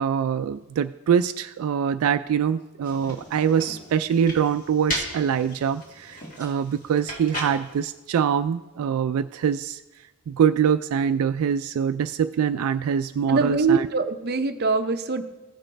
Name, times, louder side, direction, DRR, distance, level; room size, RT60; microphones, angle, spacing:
voice 1, 0.0-9.8 10.3-13.9, right 7 dB, 85° right, 10 dB, 0.3 m, -24 dB
sound 1, 2.8-7.9, equal, 40° left, 2.1 m, -36 dB
voice 2, 13.3-15.2, right 4 dB, 50° right, 7 dB, 0.6 m, -23 dB
15.0 x 6.2 x 3.3 m, 1.1 s
head